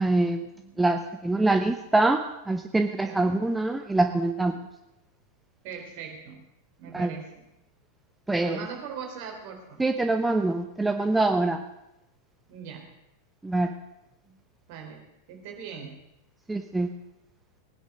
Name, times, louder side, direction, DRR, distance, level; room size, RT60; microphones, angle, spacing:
voice 1, 0.0-0.4 0.8-2.2 2.5-4.6 6.9-7.1 8.3-8.7 9.8-11.7 13.4-13.8 16.5-16.9, right 2 dB, 10° right, 6 dB, 0.8 m, -24 dB
voice 2, 0.5-0.8 2.9-3.3 5.6-6.4 6.8-7.4 8.3-9.8 12.5-12.9 14.2-14.3 14.7-16.0, right 6 dB, 45° right, 3 dB, 3.8 m, -41 dB
19.0 x 10.0 x 6.2 m, 0.92 s
figure-of-eight pair, 90°, 0 cm